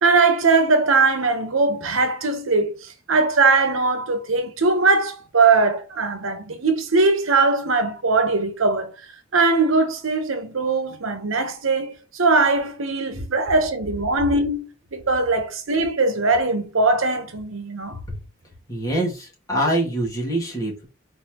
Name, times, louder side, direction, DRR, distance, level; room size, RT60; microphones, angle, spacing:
voice 1, 0.0-8.9 9.3-18.0, right 3 dB, 85° right, 0.9 m, -20 dB
voice 2, 18.7-20.9, right 1 dB, 20° left, 2.0 m, -24 dB
4.4 x 4.1 x 2.9 m
head